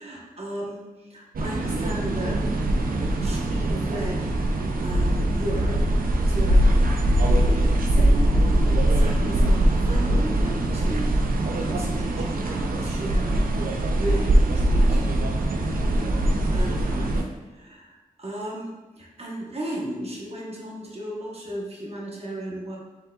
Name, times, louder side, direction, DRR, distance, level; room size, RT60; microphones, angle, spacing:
voice 1, 0.0-2.4 3.2-5.8 6.3-6.9 7.3-15.1 15.5-22.8, right 1 dB, 45° right, -4 dB, 1.0 m, -35 dB
sound 1, 1.4-17.2, right 1 dB, 80° right, 0.5 m, -22 dB
5.3 x 3.6 x 2.4 m, 1.1 s
cardioid pair, 45°, 15 cm